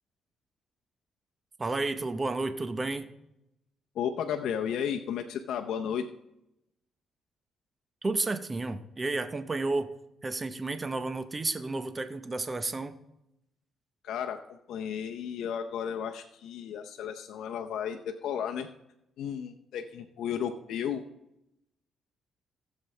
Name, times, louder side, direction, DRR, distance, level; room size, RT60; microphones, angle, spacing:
voice 1, 1.6-3.1 8.0-9.9 10.2-13.0, right 3 dB, 25° right, 10 dB, 0.8 m, -31 dB
voice 2, 3.9-6.1 14.0-18.7 19.2-21.0, left 8 dB, 75° left, 4 dB, 0.7 m, -33 dB
16.0 x 7.4 x 3.3 m, 0.84 s
cardioid pair, 90°, 0 cm